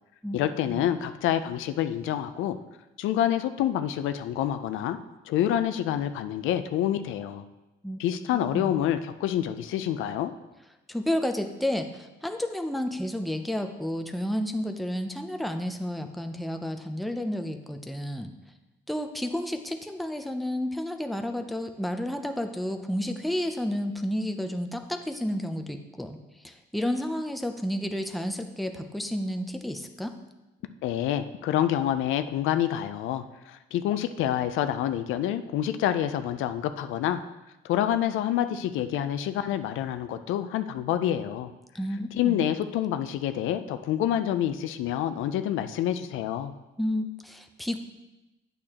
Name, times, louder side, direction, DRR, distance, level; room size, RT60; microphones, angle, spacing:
voice 1, 0.3-2.6 3.0-5.0 5.3-7.4 8.0-10.3 30.8-37.2 37.6-41.5 42.1-46.5, left 11 dB, 85° left, 10 dB, 0.5 m, -27 dB
voice 2, 8.3-8.8 10.9-18.3 18.9-26.2 26.4-30.2 41.7-42.5 46.8-47.8, left 1 dB, ahead, 6 dB, 0.6 m, -31 dB
8.5 x 6.6 x 2.9 m, 1.0 s
cardioid pair, 90°, 20 cm